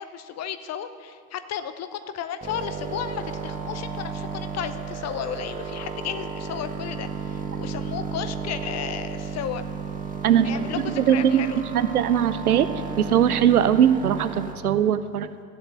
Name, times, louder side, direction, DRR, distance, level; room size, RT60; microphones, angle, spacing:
voice 1, 0.0-9.6 10.4-11.6 13.5-13.8, left 9 dB, 35° left, 11 dB, 0.8 m, -34 dB
sound 1, 2.4-14.5, right 5 dB, 20° right, 1.6 m, -33 dB
voice 2, 10.2-15.3, right 9 dB, 80° right, 13 dB, 0.6 m, -21 dB
13.0 x 7.9 x 8.1 m, 2.3 s
figure-of-eight pair, 60°, 44 cm